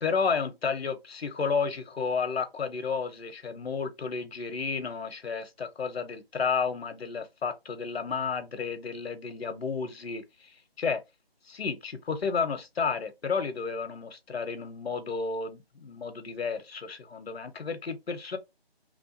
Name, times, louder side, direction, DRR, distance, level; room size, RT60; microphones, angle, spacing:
voice 1, 0.0-10.2 10.8-11.0 11.5-18.4, left 5 dB, 75° left, 0.7 m, -32 dB
2.9 x 2.2 x 2.5 m
figure-of-eight pair, 155°, 31 cm